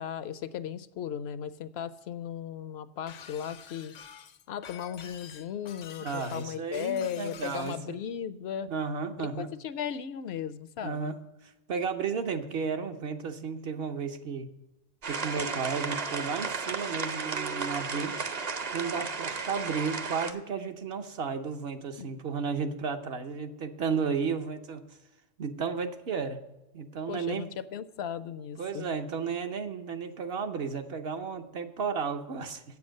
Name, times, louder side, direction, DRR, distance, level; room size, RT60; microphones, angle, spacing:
voice 1, 0.0-3.9 4.5-8.7 9.2-11.2 22.0-22.1 27.1-28.9, left 8 dB, 75° left, 14 dB, 0.8 m, -36 dB
Shatter, 3.1-7.8, left 7 dB, 55° left, 0.5 m, -48 dB
voice 2, 6.0-8.0 8.7-9.5 10.8-11.1 11.7-14.5 15.0-18.1 18.7-24.9 25.4-26.4 26.7-27.4 28.6-32.6, right 5 dB, 65° right, 7 dB, 1.1 m, -33 dB
sound 1, 15.0-20.3, right 5 dB, 45° right, 0.7 m, -34 dB
8.3 x 7.2 x 6.3 m, 1.0 s
omnidirectional pair, 1.1 m